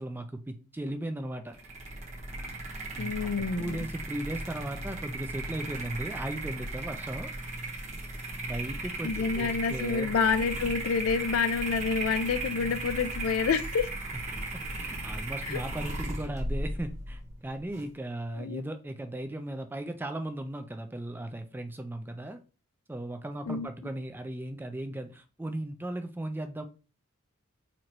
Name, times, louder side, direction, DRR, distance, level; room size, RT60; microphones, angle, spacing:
voice 1, 0.0-1.6 2.9-3.1 3.5-7.3 8.4-10.1 14.8-22.4 22.9-26.7, right 1 dB, 10° right, 0.3 m, -37 dB
sound 1, 1.5-17.9, right 2 dB, 35° right, 0.8 m, -36 dB
voice 2, 3.0-3.8 9.0-13.9 15.4-15.6 18.3-18.6 23.5-23.7, left 5 dB, 75° left, 0.4 m, -28 dB
4.3 x 2.5 x 3.0 m
head